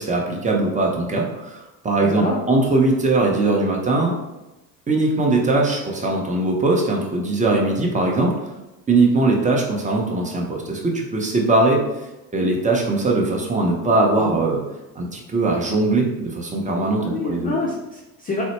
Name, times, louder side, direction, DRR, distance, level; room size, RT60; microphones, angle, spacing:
voice 1, 0.0-4.1 4.9-8.3 8.9-11.8 12.3-14.6 15.0-17.6, right 2 dB, 15° right, -1 dB, 0.7 m, -20 dB
voice 2, 2.0-2.4 14.2-14.5 17.0-18.4, left 3 dB, 20° left, -2 dB, 0.4 m, -28 dB
3.9 x 2.1 x 3.0 m, 1.0 s
hypercardioid pair, 75°, 48 cm